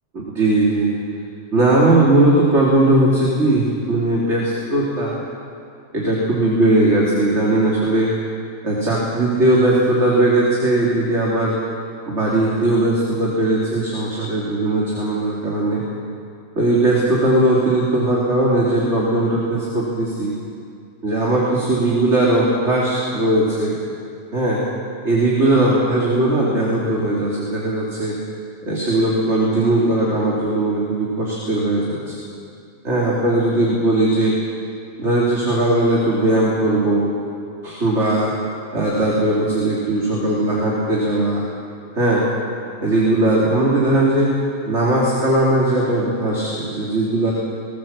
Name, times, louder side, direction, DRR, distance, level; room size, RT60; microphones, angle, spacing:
voice 1, 0.1-0.9 1.5-5.2 5.9-8.1 8.6-11.6 12.1-15.8 16.6-20.3 21.0-23.7 24.3-24.6 25.0-28.2 28.6-32.1 32.8-34.3 35.0-37.1 37.6-38.3 38.7-41.4 41.9-42.2 42.8-44.3 44.6-47.3, right 1 dB, 55° right, -5 dB, 3.4 m, -18 dB
21.0 x 19.0 x 7.4 m, 2.4 s
omnidirectional pair, 1.4 m